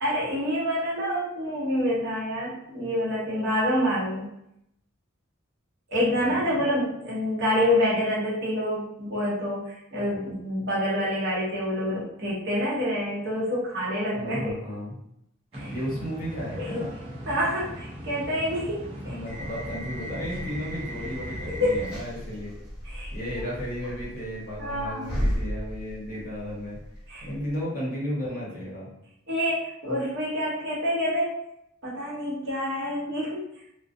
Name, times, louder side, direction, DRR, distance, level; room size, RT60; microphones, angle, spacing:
voice 1, 0.0-4.3 5.9-14.4 15.5-15.7 16.6-16.8 17.3-18.8 19.1-19.2 21.6-21.8 22.8-23.1 23.4-23.5 24.6-25.1 27.1-27.3 29.3-31.3 31.8-33.5, equal, 60° right, -6 dB, 0.9 m, -27 dB
voice 2, 6.2-6.6 14.1-14.9 15.6-16.9 19.0-22.7 23.1-26.8 27.2-28.9, equal, 40° left, -7 dB, 1.0 m, -34 dB
sound 1, 15.5-22.0, equal, 30° right, 0.6 m, -39 dB
sound 2, 19.3-27.6, equal, 5° right, 0.9 m, -35 dB
2.4 x 2.1 x 2.5 m, 0.79 s
head